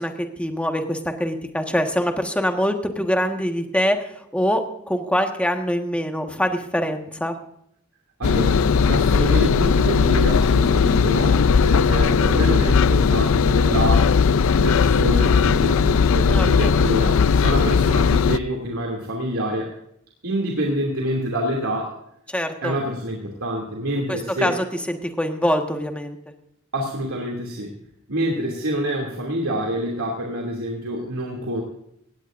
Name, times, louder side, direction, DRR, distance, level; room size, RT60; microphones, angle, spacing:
voice 1, 0.0-7.3 16.3-16.8 22.3-22.7 24.1-26.2, equal, 5° left, 4 dB, 1.5 m, -24 dB
Engine, 8.2-18.4, left 5 dB, 70° left, 0.4 m, -18 dB
voice 2, 8.2-14.1 14.6-19.7 20.2-22.0 22.6-24.5 26.7-27.8 28.1-31.6, right 1 dB, 80° right, -1 dB, 2.7 m, -27 dB
18.5 x 16.0 x 2.6 m, 0.73 s
head